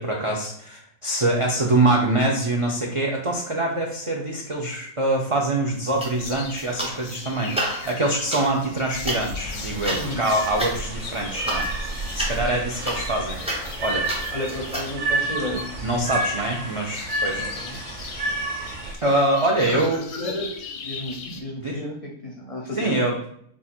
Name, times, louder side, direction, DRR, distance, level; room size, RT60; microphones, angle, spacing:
voice 1, 0.0-11.7 12.1-13.4 13.8-14.1 15.8-17.5 19.0-20.0 21.6-21.8 22.8-23.3, right 2 dB, 55° right, -1 dB, 0.3 m, -24 dB
sound 1, 5.8-21.4, left 5 dB, 85° left, 1.1 m, -40 dB
sound 2, 6.0-7.2 7.4-14.9, right 1 dB, 5° right, 0.5 m, -32 dB
sound 3, 9.4-18.9, right 2 dB, 40° right, 0.8 m, -30 dB
voice 2, 9.9-10.2 12.3-12.6 14.3-15.7 17.3-17.8 19.6-23.0, left 1 dB, 40° left, -1 dB, 0.5 m, -32 dB
4.5 x 2.4 x 4.2 m, 0.69 s
omnidirectional pair, 1.4 m